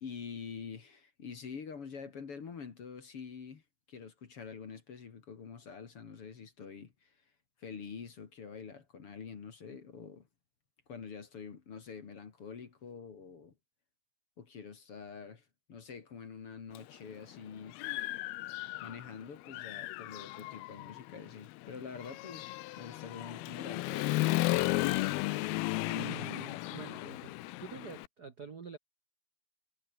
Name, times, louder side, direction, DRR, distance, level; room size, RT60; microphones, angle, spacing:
voice 1, 0.0-3.6 3.9-7.1 7.6-10.3 10.9-13.5 14.4-15.4 15.7-17.8 18.8-24.2, left 6 dB, 40° left, 2.7 m, -46 dB
Human voice / Motorcycle, 16.8-16.9 17.3-19.1 19.5-28.1, left 19 dB, 80° left, 2.5 m, -35 dB
voice 2, 25.9-28.8, right 5 dB, 65° right, 0.9 m, -46 dB
omnidirectional pair, 4.6 m